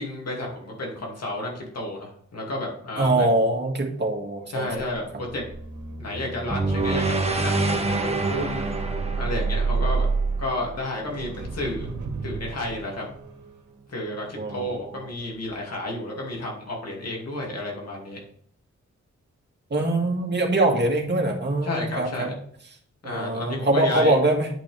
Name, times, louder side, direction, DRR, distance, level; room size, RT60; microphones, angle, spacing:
voice 1, 0.0-3.3 4.5-5.4 6.0-8.7 9.2-10.1 10.4-11.9 12.2-13.0 13.9-18.2 21.6-22.3 23.0-24.1, left 1 dB, 60° left, -1 dB, 2.6 m, -31 dB
voice 2, 3.0-4.7 14.4-15.1 19.7-22.3 23.0-24.5, right 2 dB, 35° right, 1 dB, 2.1 m, -23 dB
sound 1, 4.8-15.0 15.3-15.6, right 4 dB, 90° right, 1.7 m, -31 dB
sound 2, 6.5-10.7, right 3 dB, 20° right, 1.2 m, -26 dB
10.5 x 5.8 x 3.4 m, 0.64 s
wide cardioid pair, 105°, 29 cm